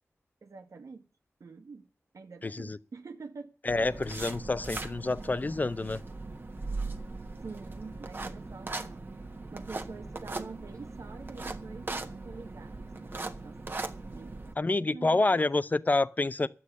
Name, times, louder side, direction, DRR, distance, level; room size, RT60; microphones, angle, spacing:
voice 1, 0.4-1.1 1.4-1.9 2.1-3.5 7.4-9.0 9.5-13.6 14.1-15.4, right 4 dB, 90° right, 1.6 m, -46 dB
voice 2, 2.4-2.8 3.6-6.0 14.6-16.5, left 2 dB, 35° left, 0.7 m, -28 dB
sound 1, 3.7-14.5, right 3 dB, 40° right, 1.3 m, -39 dB
11.5 x 8.6 x 9.5 m
wide cardioid pair, 95°, 5 cm